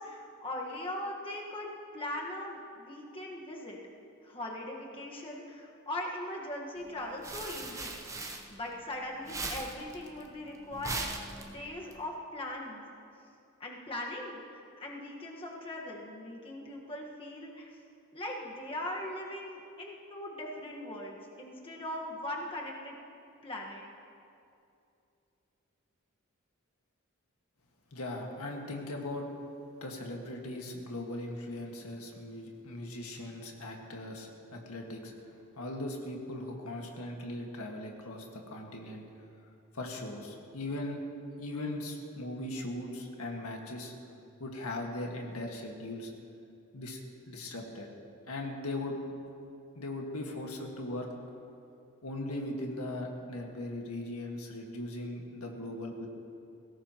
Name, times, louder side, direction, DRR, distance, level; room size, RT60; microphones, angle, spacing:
voice 1, 0.0-3.8 4.2-11.1 11.5-12.8 13.6-17.7 18.1-23.0 23.4-23.8, left 1 dB, 25° left, -2 dB, 1.4 m, -40 dB
sound 1, 6.9-8.9 9.2-11.9, right 2 dB, 15° right, 0.8 m, -39 dB
voice 2, 27.9-29.3 29.8-35.1 35.6-39.0 39.7-41.0 41.4-43.9 44.4-46.1 46.7-47.0 47.3-47.9 48.3-49.0 49.8-51.1 52.0-56.1, left 1 dB, 90° left, 1 dB, 1.8 m, -39 dB
20.5 x 17.0 x 3.0 m, 2.6 s
head